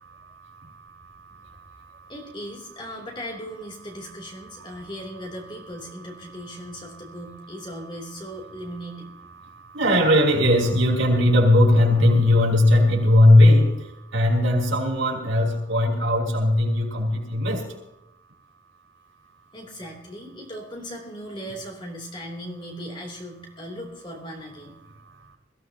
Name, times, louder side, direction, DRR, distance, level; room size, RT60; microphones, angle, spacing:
voice 1, 2.1-9.1 19.5-24.7, equal, 25° left, 0 dB, 3.2 m, -38 dB
voice 2, 9.7-13.7 14.1-17.6, left 1 dB, 85° right, -2 dB, 5.2 m, -18 dB
22.5 x 15.5 x 2.9 m, 0.88 s
head